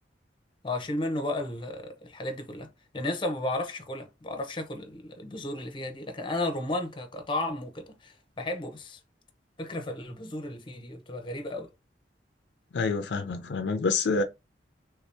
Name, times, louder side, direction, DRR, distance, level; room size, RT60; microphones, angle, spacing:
voice 1, 0.6-2.7 2.9-9.0 9.6-11.7, left 1 dB, 25° left, 0.7 m, -33 dB
voice 2, 12.7-14.2, left 4 dB, 65° left, 0.4 m, -27 dB
3.3 x 2.7 x 3.3 m
head